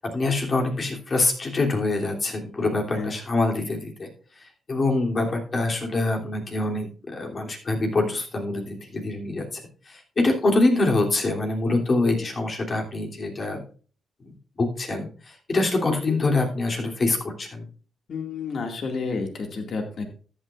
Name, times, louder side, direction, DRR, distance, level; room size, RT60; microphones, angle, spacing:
voice 1, 0.1-4.1 4.7-9.6 9.9-13.6 14.2-15.1 15.5-17.7, left 2 dB, 45° left, 1 dB, 3.1 m, -25 dB
voice 2, 18.1-20.1, left 4 dB, 60° left, 4 dB, 2.2 m, -30 dB
13.5 x 9.1 x 2.5 m, 0.40 s
supercardioid pair, 60°, 0 cm